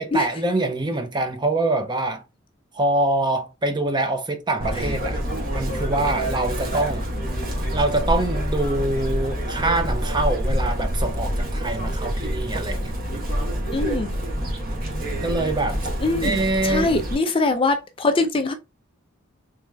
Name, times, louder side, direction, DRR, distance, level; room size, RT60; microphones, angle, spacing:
voice 1, 0.0-2.2 2.7-5.2 5.5-7.1 7.7-12.9 13.7-13.8 15.1-15.8 16.2-16.9, right 2 dB, 20° right, 0.6 m, -24 dB
Chirp tweet, 4.6-17.1, equal, 45° right, 1.2 m, -26 dB
voice 2, 13.7-14.1 16.0-18.5, left 3 dB, 25° left, 0.4 m, -23 dB
3.4 x 3.3 x 3.2 m
head